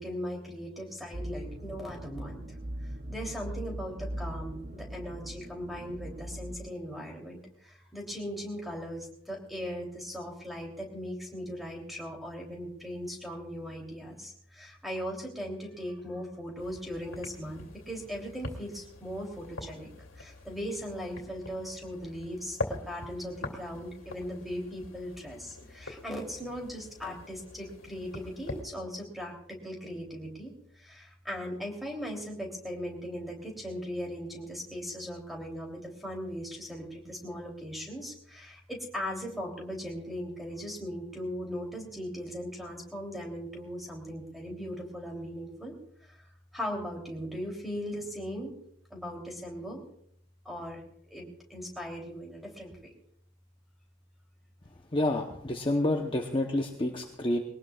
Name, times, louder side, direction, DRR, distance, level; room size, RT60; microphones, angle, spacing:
voice 1, 0.0-2.6 3.1-19.9 20.2-45.7 46.0-46.2 46.5-48.5 48.9-49.8 50.4-50.8 51.1-52.8, equal, ahead, 0 dB, 3.2 m, -39 dB
sound 1, 1.1-6.6, right 1 dB, 40° right, 0.7 m, -40 dB
sound 2, 16.6-28.6, left 2 dB, 75° left, 2.6 m, -43 dB
voice 2, 54.9-57.4, left 1 dB, 25° left, 2 dB, 0.9 m, -28 dB
22.0 x 18.5 x 2.4 m, 0.69 s
head